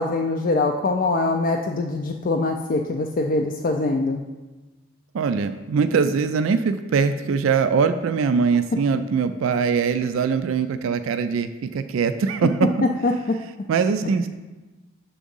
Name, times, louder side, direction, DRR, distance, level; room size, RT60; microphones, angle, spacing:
voice 1, 0.0-4.2 13.0-13.1 14.0-14.1, left 2 dB, 40° left, 2 dB, 0.3 m, -23 dB
voice 2, 5.1-12.7 13.7-14.3, right 5 dB, 70° right, 9 dB, 0.3 m, -22 dB
6.9 x 3.7 x 5.3 m, 1.2 s
head